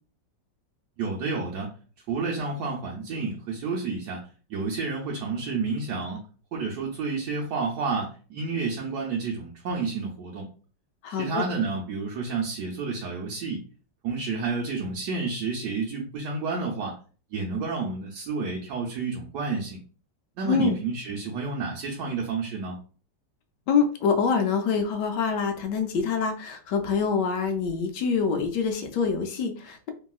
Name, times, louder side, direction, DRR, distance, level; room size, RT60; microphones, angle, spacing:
voice 1, 1.0-1.7 2.1-4.2 4.5-6.2 6.5-10.5 11.1-13.6 14.0-17.0 17.3-19.8 20.4-22.8, right 4 dB, 75° right, -2 dB, 1.1 m, -30 dB
voice 2, 11.0-11.4 20.5-20.8 23.7-29.9, left 5 dB, 75° left, 6 dB, 1.1 m, -25 dB
3.0 x 2.7 x 2.3 m, 0.39 s
omnidirectional pair, 2.0 m